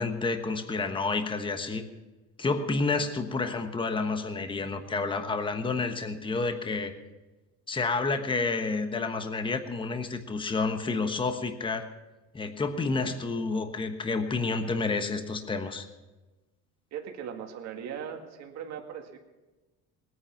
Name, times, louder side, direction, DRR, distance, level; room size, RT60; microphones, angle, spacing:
voice 1, 0.0-1.8 2.4-6.9 7.7-11.9 12.3-15.9, left 3 dB, 15° left, 7 dB, 1.2 m, -29 dB
voice 2, 16.9-19.2, right 8 dB, 55° right, 3 dB, 2.1 m, -39 dB
19.5 x 9.6 x 5.9 m, 1.1 s
cardioid pair, 125°, 32 cm